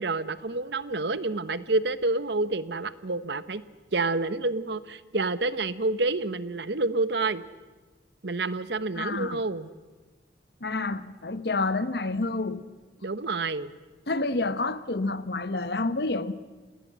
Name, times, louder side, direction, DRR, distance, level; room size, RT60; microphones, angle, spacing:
voice 1, 0.0-3.6 3.9-7.4 8.2-9.7 13.0-13.7, right 3 dB, 65° right, 1.0 m, -28 dB
voice 2, 9.0-9.4 10.6-12.7 14.1-16.3, left 3 dB, 60° left, 1.1 m, -29 dB
29.0 x 18.5 x 7.5 m
head